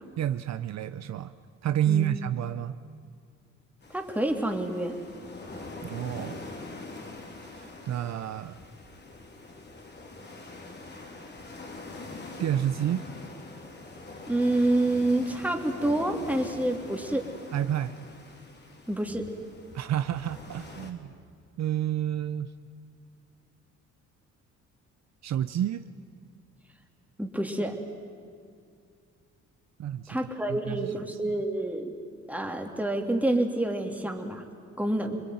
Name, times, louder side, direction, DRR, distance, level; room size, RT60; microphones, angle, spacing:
voice 1, 0.2-1.3 1.6-2.8 5.8-6.4 7.5-8.6 12.4-13.1 17.5-18.0 19.7-21.1 21.6-22.5 25.2-25.8 29.8-30.2 30.5-31.3, right 11 dB, 60° right, 11 dB, 0.8 m, -30 dB
sound 1, 3.8-20.9, left 3 dB, 35° left, 3.1 m, -43 dB
voice 2, 3.9-5.0 14.3-17.2 18.9-19.2 27.2-27.8 30.1-31.9 32.3-34.4 34.8-35.2, right 1 dB, 5° right, 2 dB, 3.0 m, -28 dB
27.0 x 21.0 x 9.5 m, 2.2 s
cardioid pair, 90°, 30 cm